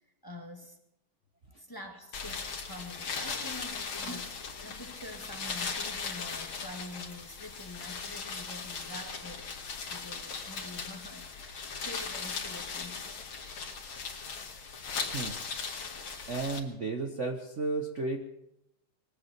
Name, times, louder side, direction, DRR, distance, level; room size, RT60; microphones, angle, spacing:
voice 1, 0.2-0.8 1.6-9.5 9.9-13.1, left 1 dB, 10° left, 3 dB, 1.8 m, -46 dB
sound 1, 2.1-16.6, left 5 dB, 75° left, 2.8 m, -38 dB
voice 2, 16.3-18.2, right 3 dB, 40° right, 4 dB, 1.3 m, -33 dB
22.5 x 8.7 x 7.3 m, 0.81 s
omnidirectional pair, 2.3 m